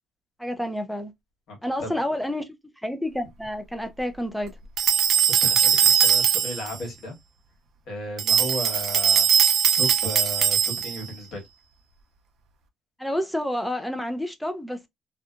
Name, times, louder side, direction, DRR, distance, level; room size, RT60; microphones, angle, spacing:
voice 1, 0.4-1.1 1.6-2.5 2.8-4.5 13.0-14.9, left 1 dB, ahead, 0.4 m, -29 dB
voice 2, 1.5-1.9 5.4-7.1 7.9-9.3 9.8-11.5, left 1 dB, 70° left, 1.4 m, -34 dB
sound 1, 4.8-6.7 8.2-11.1, right 8 dB, 60° right, 0.5 m, -20 dB
2.7 x 2.3 x 2.3 m
cardioid pair, 140°, 0 cm